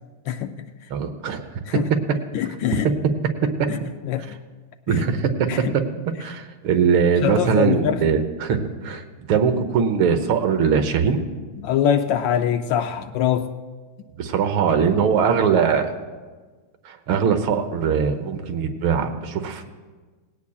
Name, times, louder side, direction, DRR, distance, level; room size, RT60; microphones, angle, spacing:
voice 1, 0.9-1.4 4.9-5.8 6.2-9.0 9.3-11.2 14.2-15.9 16.8-19.7, right 6 dB, 80° right, 7 dB, 1.8 m, -21 dB
voice 2, 2.3-2.9 3.7-3.8 4.0-4.4 4.9-5.0 5.5-5.7 7.2-8.0 11.6-13.5, left 9 dB, 75° left, 8 dB, 1.2 m, -23 dB
19.0 x 17.0 x 2.3 m, 1.4 s
omnidirectional pair, 2.3 m